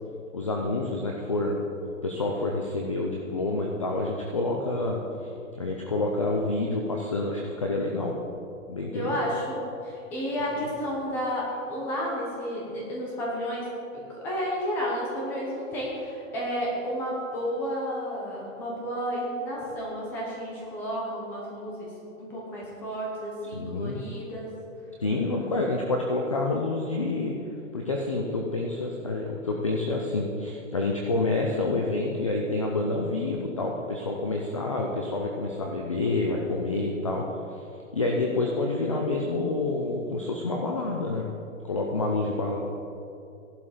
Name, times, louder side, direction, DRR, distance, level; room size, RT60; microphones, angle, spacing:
voice 1, 0.3-1.6 2.0-5.3 5.6-8.2 8.7-9.3 23.5-24.0 25.0-27.3 27.7-37.3 37.9-41.3 41.6-42.6, left 2 dB, 25° left, 0 dB, 0.6 m, -28 dB
voice 2, 8.9-24.5, equal, 5° left, -4 dB, 0.9 m, -32 dB
15.5 x 11.5 x 5.0 m, 2.8 s
hypercardioid pair, 180°, 41 cm